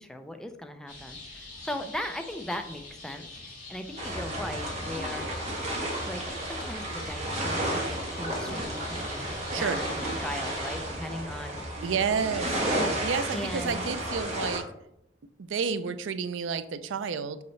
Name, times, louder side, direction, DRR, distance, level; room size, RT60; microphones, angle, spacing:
voice 1, 0.0-5.3 6.0-9.2 9.5-11.6 11.9-13.8, left 1 dB, 5° left, 6 dB, 0.4 m, -39 dB
sound 1, 0.9-10.8, left 2 dB, 45° left, 2.6 m, -45 dB
sound 2, 4.0-14.6, right 1 dB, 35° right, 1.5 m, -32 dB
voice 2, 9.3-9.8 11.8-12.6 13.0-14.6 15.4-17.4, right 6 dB, 85° right, 13 dB, 0.5 m, -30 dB
6.9 x 5.2 x 3.2 m, 0.80 s
head